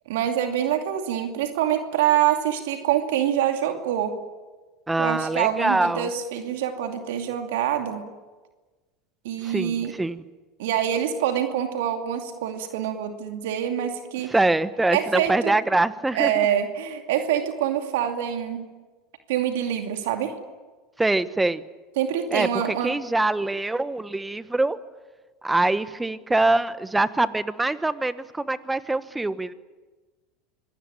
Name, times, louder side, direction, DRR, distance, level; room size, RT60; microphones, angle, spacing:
voice 1, 0.1-4.2 5.0-8.0 9.2-9.9 10.6-14.3 14.9-15.5 16.1-18.7 19.3-20.3 22.0-22.9, right 10 dB, 75° right, 5 dB, 2.5 m, -25 dB
voice 2, 4.9-6.1 9.4-10.2 14.3-16.5 21.0-21.6 22.3-24.8 25.4-29.5, right 2 dB, 10° right, 14 dB, 1.2 m, -24 dB
25.5 x 19.0 x 9.0 m, 1.3 s
hypercardioid pair, 90°, 0 cm